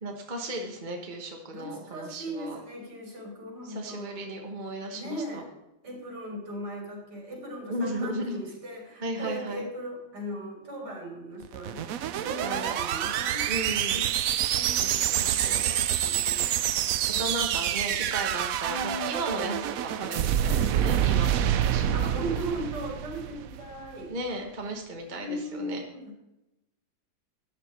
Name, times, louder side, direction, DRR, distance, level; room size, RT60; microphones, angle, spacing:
voice 1, 0.0-2.6 3.7-5.4 7.7-8.4 9.0-9.7 12.4-12.7 13.5-14.1 14.8-15.7 17.2-21.4 21.7-22.0 24.1-25.8, right 1 dB, 25° right, 2 dB, 1.2 m, -35 dB
voice 2, 1.5-4.2 4.9-5.5 5.8-13.5 14.5-16.6 17.1-17.7 18.6-19.6 21.9-24.1 25.1-26.2, equal, 55° right, -1 dB, 4.7 m, -38 dB
sound 1, 11.4-23.8, right 10 dB, 85° right, 0.7 m, -27 dB
14.0 x 9.9 x 4.4 m, 0.90 s
omnidirectional pair, 2.2 m